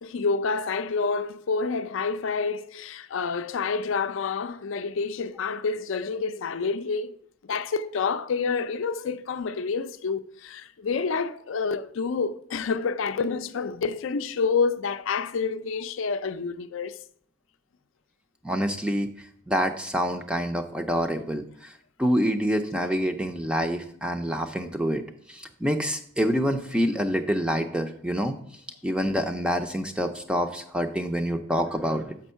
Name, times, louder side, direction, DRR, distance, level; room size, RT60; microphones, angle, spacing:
voice 1, 0.0-7.2 7.5-17.0, left 5 dB, 70° left, 0.4 m, -28 dB
voice 2, 18.4-25.0 25.3-28.3 28.8-32.2, equal, 5° right, 0.4 m, -27 dB
7.0 x 5.2 x 5.5 m
head